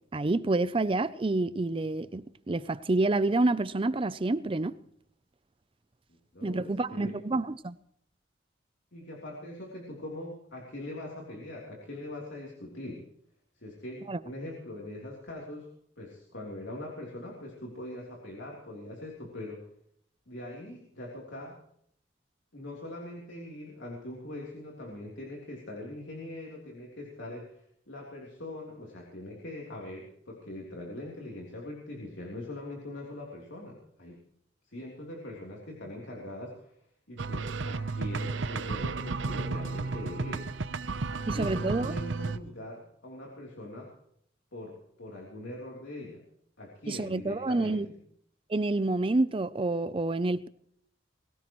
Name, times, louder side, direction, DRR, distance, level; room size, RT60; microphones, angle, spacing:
voice 1, 0.1-4.7 6.4-7.7 14.1-14.2 41.3-41.9 46.9-47.9 48.5-50.5, right 2 dB, 30° right, 0.5 m, -28 dB
voice 2, 6.3-7.2 8.9-13.1 13.6-15.7 16.0-19.6 20.3-21.6 22.5-27.6 27.9-34.2 34.7-36.7 37.1-40.5 41.1-43.9 44.5-46.2 46.6-47.9, left 1 dB, 70° left, 3.4 m, -42 dB
sound 1, 37.2-42.4, right 3 dB, 80° right, 0.7 m, -33 dB
22.0 x 17.0 x 3.1 m
head